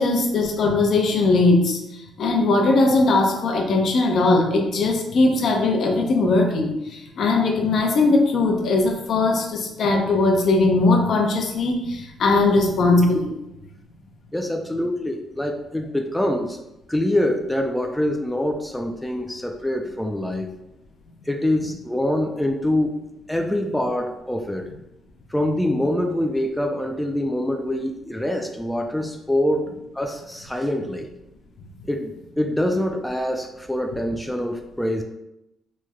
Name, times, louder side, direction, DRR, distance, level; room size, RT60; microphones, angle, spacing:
voice 1, 0.0-13.4, left 3 dB, 65° left, 3 dB, 0.6 m, -19 dB
voice 2, 14.3-16.6 16.9-20.6 21.3-23.0 23.3-24.7 25.3-29.7 29.9-31.1 31.9-35.0, left 1 dB, 5° left, 3 dB, 0.3 m, -25 dB
3.1 x 2.1 x 3.5 m, 0.90 s
cardioid pair, 90°, 0 cm